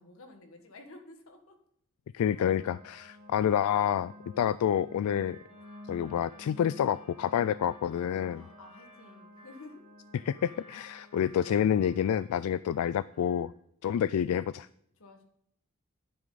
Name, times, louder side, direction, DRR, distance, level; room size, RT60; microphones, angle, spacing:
voice 1, 0.0-1.6 3.4-3.8 4.3-4.6 8.2-9.8 15.0-15.2, left 2 dB, 70° left, 4 dB, 1.6 m, -52 dB
voice 2, 2.1-5.4 5.9-8.4 10.1-13.5 13.8-14.7, left 9 dB, 85° left, 16 dB, 0.3 m, -28 dB
sound 1, 2.3-12.5, left 1 dB, 55° right, 4.2 m, -52 dB
sound 2, 5.2-9.7 10.2-12.3 12.6-13.6, left 1 dB, 25° left, 4.5 m, -58 dB
11.0 x 9.6 x 4.0 m, 0.71 s
head